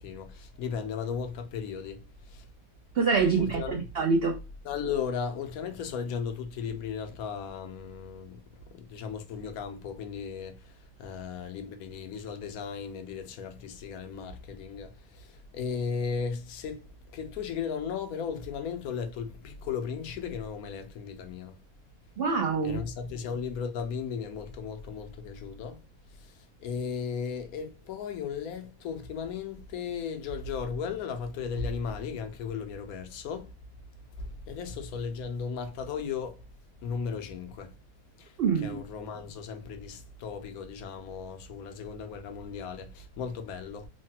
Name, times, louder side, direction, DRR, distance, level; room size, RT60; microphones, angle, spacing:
voice 1, 0.0-2.0 2.3-2.4 3.4-3.8 4.6-16.8 17.1-21.6 22.6-25.8 26.2-33.5 34.2-36.4 36.8-37.7 38.2-43.9, left 6 dB, 80° left, 1.0 m, -36 dB
voice 2, 3.0-4.4 22.2-22.8 38.4-38.8, right 5 dB, 65° right, 0.6 m, -25 dB
3.1 x 2.1 x 2.7 m
omnidirectional pair, 1.5 m